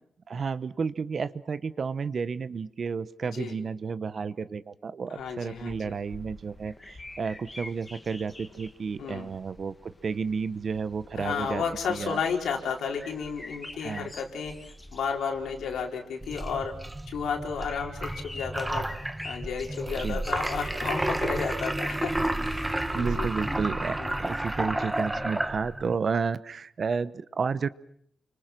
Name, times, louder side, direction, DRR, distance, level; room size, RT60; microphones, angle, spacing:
voice 1, 0.3-11.6 11.9-12.2 13.8-14.1 20.0-20.2 22.9-27.7, right 5 dB, 45° right, 15 dB, 1.0 m, -31 dB
voice 2, 5.1-6.0 9.0-9.3 11.1-16.7 17.1-18.9 19.2-23.3 24.0-24.2, left 6 dB, 90° left, 1 dB, 4.6 m, -33 dB
sound 1, 5.2-23.7, left 2 dB, 15° left, 2.2 m, -47 dB
sound 2, 16.2-25.9, right 1 dB, 10° right, 1.2 m, -31 dB
30.0 x 25.0 x 6.2 m, 0.67 s
cardioid pair, 120°, 0 cm